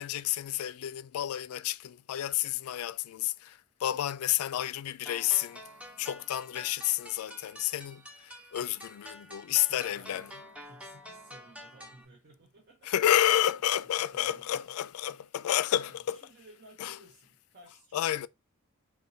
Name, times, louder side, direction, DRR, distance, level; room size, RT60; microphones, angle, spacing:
voice 1, 0.0-5.6 6.0-10.3 12.8-16.2 16.8-16.9 17.9-18.3, left 12 dB, 85° left, 0.3 m, -30 dB
sound 1, 5.1-12.1, equal, 5° right, 0.7 m, -48 dB
voice 2, 9.6-12.9 13.2-13.4 13.9-14.7 15.0-15.5 15.8-18.1, right 1 dB, 50° right, 0.8 m, -56 dB
5.4 x 2.2 x 3.9 m
head